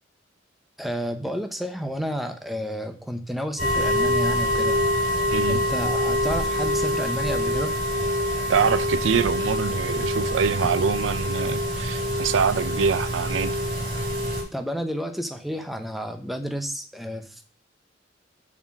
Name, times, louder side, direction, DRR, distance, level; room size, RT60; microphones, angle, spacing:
voice 1, 0.8-4.8 5.5-7.7 10.6-10.8 14.5-17.5, equal, ahead, 0.7 m, -31 dB
sound 1, 3.6-14.4, left 1 dB, 30° right, 4.2 m, -25 dB
voice 2, 8.5-13.6, right 6 dB, 80° right, 0.4 m, -24 dB
7.2 x 4.4 x 6.0 m
head